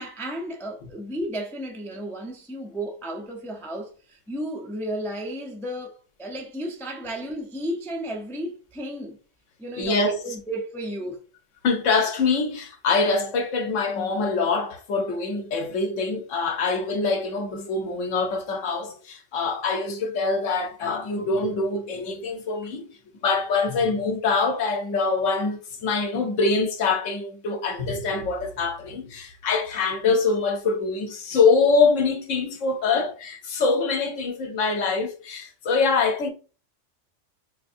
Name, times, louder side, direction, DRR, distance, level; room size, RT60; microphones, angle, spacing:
voice 1, 0.0-9.2 9.6-11.2, right 1 dB, 5° left, 0.4 m, -33 dB
voice 2, 9.8-10.2 11.6-22.9 23.2-36.3, left 4 dB, 75° left, 1.1 m, -24 dB
4.5 x 2.6 x 2.5 m
omnidirectional pair, 1.3 m